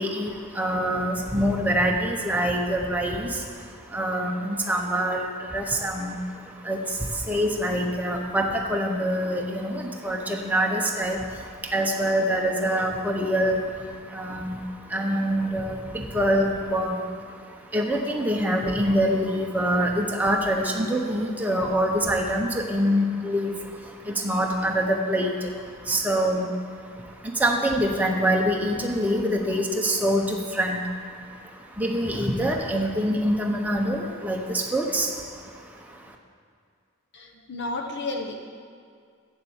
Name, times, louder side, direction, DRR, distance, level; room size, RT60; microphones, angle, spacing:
voice 1, 0.0-36.2, equal, 5° right, 0 dB, 0.9 m, -26 dB
voice 2, 37.1-38.3, left 2 dB, 50° left, 2 dB, 0.9 m, -32 dB
8.1 x 7.4 x 7.2 m, 2.1 s
head